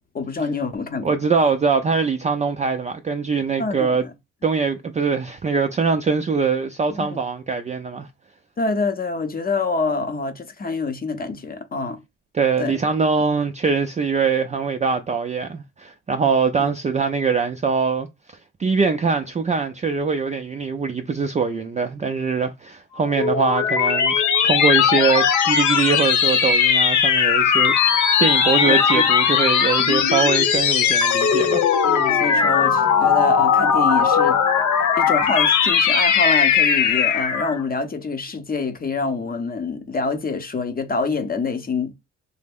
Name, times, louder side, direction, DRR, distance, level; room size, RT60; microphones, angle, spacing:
voice 1, 0.1-1.2 3.6-4.1 6.9-7.2 8.6-12.0 12.6-12.8 16.6-16.7 28.6-29.1 31.8-34.4 35.0-41.9, left 4 dB, 30° left, 0.6 m, -26 dB
voice 2, 1.0-4.1 4.4-8.1 12.3-18.1 18.6-31.6, right 5 dB, 25° right, 0.4 m, -22 dB
sound 1, 22.9-37.6, left 7 dB, 75° left, 0.8 m, -18 dB
3.2 x 2.0 x 3.5 m
cardioid pair, 90°, 30 cm